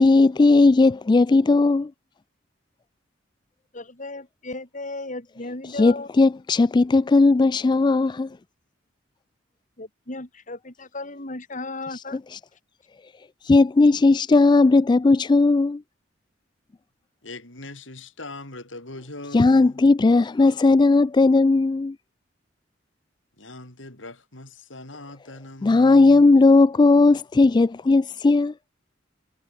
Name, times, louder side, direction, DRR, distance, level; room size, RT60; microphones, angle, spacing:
voice 1, 0.0-1.9 5.8-8.3 12.3-12.4 13.4-15.8 19.3-22.0 25.6-28.5, left 3 dB, 25° left, 0.3 m, -17 dB
voice 2, 3.7-6.1 9.8-12.2, left 2 dB, 45° left, 4.6 m, -35 dB
voice 3, 17.2-19.8 23.4-26.3, left 2 dB, 85° left, 7.6 m, -41 dB
head